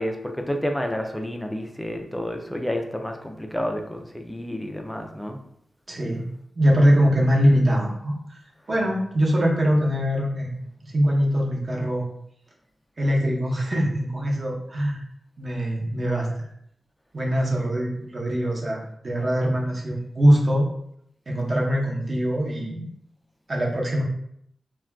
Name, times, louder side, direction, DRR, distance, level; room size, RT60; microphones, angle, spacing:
voice 1, 0.0-5.4, equal, 5° left, 3 dB, 0.3 m, -30 dB
voice 2, 5.9-6.2 6.6-8.4 8.7-12.0 13.0-15.0 15.4-16.3 17.1-20.6 21.3-22.9 23.5-24.0, equal, 40° right, -3 dB, 0.7 m, -22 dB
2.4 x 2.2 x 3.4 m, 0.72 s
wide cardioid pair, 140°, 0 cm